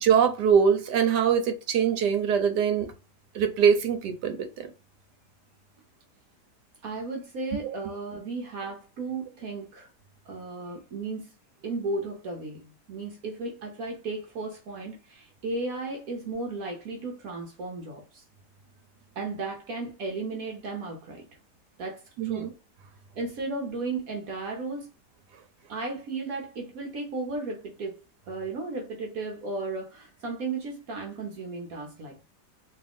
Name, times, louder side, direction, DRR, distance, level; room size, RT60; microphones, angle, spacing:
voice 1, 0.0-2.9 3.3-4.7 7.6-7.7 22.2-22.5, right 7 dB, 80° right, 1.3 m, -23 dB
voice 2, 6.8-9.9 10.2-11.3 11.6-18.2 19.2-21.3 21.8-22.5 23.2-24.9 25.7-28.0 28.3-32.2, right 3 dB, 65° right, 1.2 m, -35 dB
3.6 x 3.0 x 3.5 m
omnidirectional pair, 1.8 m